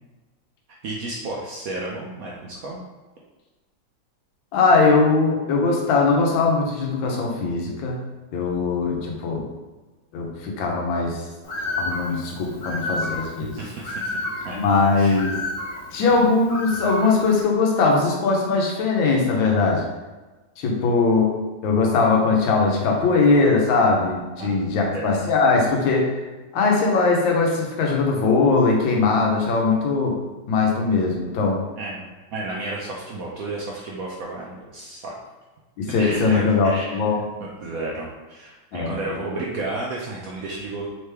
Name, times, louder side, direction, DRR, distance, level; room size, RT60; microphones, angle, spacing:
voice 1, 0.8-2.8 13.6-14.6 14.9-15.2 24.4-25.1 31.8-35.1 36.0-37.0 37.4-40.9, right 2 dB, 70° right, -3 dB, 0.8 m, -32 dB
voice 2, 4.5-8.0 8.3-9.5 10.1-11.2 11.8-13.6 14.5-15.4 15.9-19.8 20.6-21.3 21.6-26.1 26.5-30.2 30.5-31.6 35.8-37.2 38.7-39.0, left 4 dB, 90° left, 0 dB, 1.5 m, -20 dB
Bird, 11.4-17.4, left 2 dB, 50° left, 0.6 m, -31 dB
3.8 x 3.2 x 3.3 m, 1.2 s
omnidirectional pair, 2.0 m